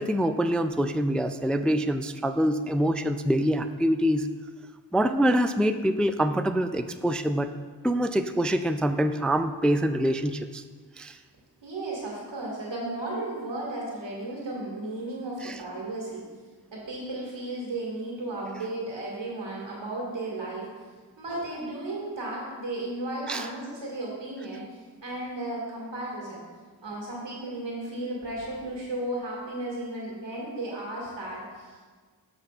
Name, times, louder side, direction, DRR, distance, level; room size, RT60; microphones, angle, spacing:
voice 1, 0.0-4.3 4.9-7.5 7.8-10.6 11.0-11.2 15.4-15.5 23.3-23.4, equal, ahead, 8 dB, 0.3 m, -25 dB
voice 2, 11.6-16.2 16.7-20.7 21.2-26.4 26.8-31.9, right 2 dB, 85° right, -4 dB, 2.1 m, -34 dB
14.5 x 5.0 x 2.4 m, 1.5 s
cardioid pair, 45°, 42 cm